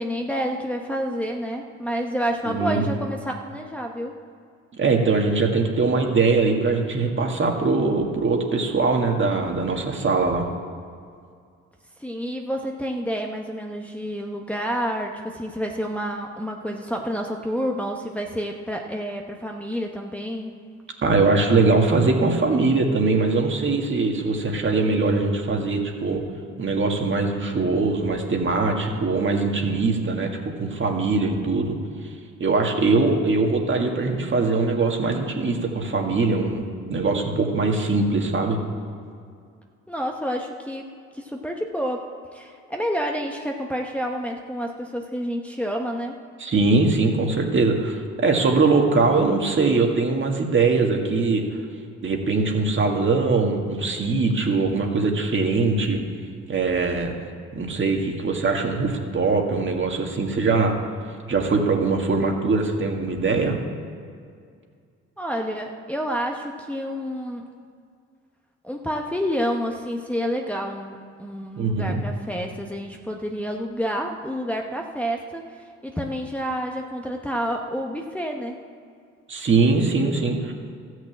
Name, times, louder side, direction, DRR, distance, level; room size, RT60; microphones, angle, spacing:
voice 1, 0.0-4.1 12.0-20.5 39.9-46.2 65.2-67.5 68.6-78.6, equal, 5° left, 1 dB, 1.0 m, -29 dB
voice 2, 2.5-2.8 4.7-10.5 21.0-26.2 26.6-31.8 32.4-36.6 36.9-38.6 46.4-51.4 52.0-56.0 56.5-57.2 57.5-60.7 61.3-63.6 71.6-72.0 79.3-80.5, right 3 dB, 40° right, 2 dB, 2.0 m, -22 dB
13.0 x 6.4 x 8.5 m, 2.3 s
cardioid pair, 90°, 30 cm